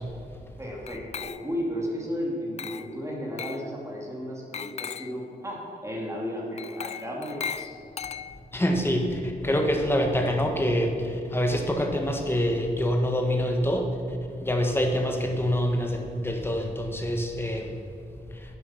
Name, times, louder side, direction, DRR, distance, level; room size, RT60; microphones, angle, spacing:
voice 1, 0.6-7.7 9.5-9.6, equal, 20° right, -3 dB, 2.6 m, -34 dB
Glass, 0.9-1.7 2.6-3.0 3.4-3.7 4.5-5.2 6.6-8.6, left 7 dB, 45° left, 0.4 m, -37 dB
voice 2, 8.5-13.9 14.4-17.7, equal, 15° left, 3 dB, 1.5 m, -25 dB
10.5 x 8.2 x 5.9 m, 2.7 s
wide cardioid pair, 100°, 16 cm